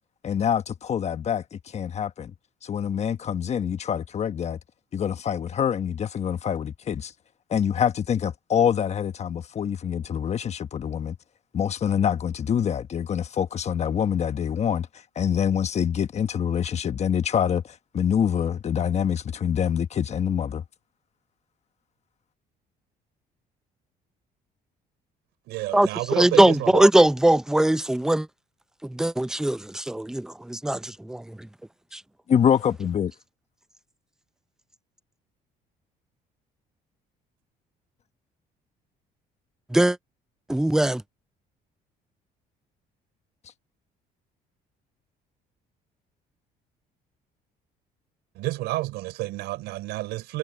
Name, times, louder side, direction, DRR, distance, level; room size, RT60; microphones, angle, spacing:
voice 1, 0.2-2.3 2.6-4.6 4.9-7.1 7.5-11.2 11.5-14.9 15.1-20.6 32.3-33.1, left 8 dB, 40° left, 1.2 m, -25 dB
voice 2, 25.5-26.8 48.3-50.4, right 18 dB, 90° right, 4.4 m, -30 dB
voice 3, 26.2-28.3 28.8-31.2 31.9-32.0 39.7-40.0 40.5-41.0, right 1 dB, 5° right, 0.5 m, -20 dB
cardioid pair, 110°, 17 cm